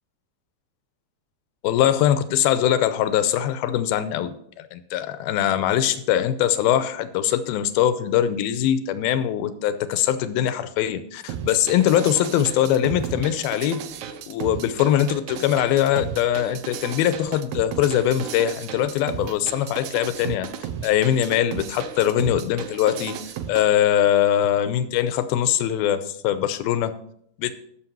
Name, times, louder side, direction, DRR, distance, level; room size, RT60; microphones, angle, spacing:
voice 1, 1.6-13.8 14.3-20.5 20.8-23.2 23.5-26.9 27.4-27.5, left 11 dB, 90° left, 11 dB, 2.6 m, -22 dB
sound 1, 11.3-23.6, right 8 dB, 85° right, 1.6 m, -34 dB
13.5 x 6.6 x 4.5 m, 0.68 s
omnidirectional pair, 4.3 m